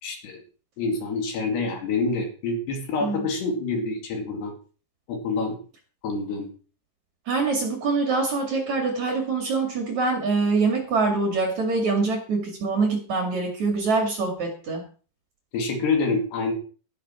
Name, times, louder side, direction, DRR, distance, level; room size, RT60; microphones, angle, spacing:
voice 1, 0.0-0.4 0.8-4.6 5.1-5.6 6.0-6.5 15.5-16.5, left 3 dB, 65° left, 3 dB, 4.3 m, -27 dB
voice 2, 7.3-14.8, right 3 dB, 45° right, 2 dB, 3.1 m, -24 dB
12.5 x 12.0 x 4.5 m, 0.38 s
omnidirectional pair, 5.3 m